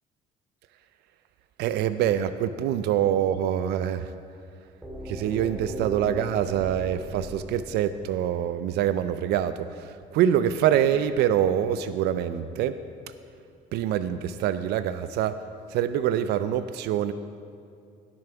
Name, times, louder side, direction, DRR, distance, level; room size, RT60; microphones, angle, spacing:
voice 1, 1.6-4.1 5.1-12.8 13.7-15.3 15.7-17.1, right 10 dB, 80° right, 12 dB, 0.4 m, -25 dB
sound 1, 4.8-8.7, equal, 10° right, 1.8 m, -38 dB
16.5 x 6.9 x 3.4 m, 2.4 s
cardioid pair, 110°, 17 cm